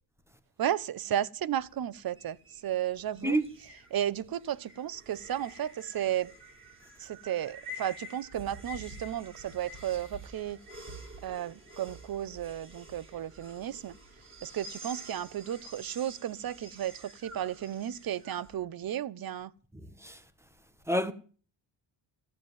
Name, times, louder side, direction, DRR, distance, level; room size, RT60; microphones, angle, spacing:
voice 1, 0.6-2.4 2.6-3.4 3.9-6.3 7.0-10.6 11.2-13.9 14.4-19.5, right 11 dB, 50° right, 0.8 m, -33 dB
sound 1, 1.6-18.5, equal, 25° right, 4.0 m, -49 dB
voice 2, 3.2-3.5 19.7-20.2 20.9-21.1, right 1 dB, 5° right, 1.3 m, -29 dB
15.0 x 7.6 x 9.1 m
wide cardioid pair, 145°, 47 cm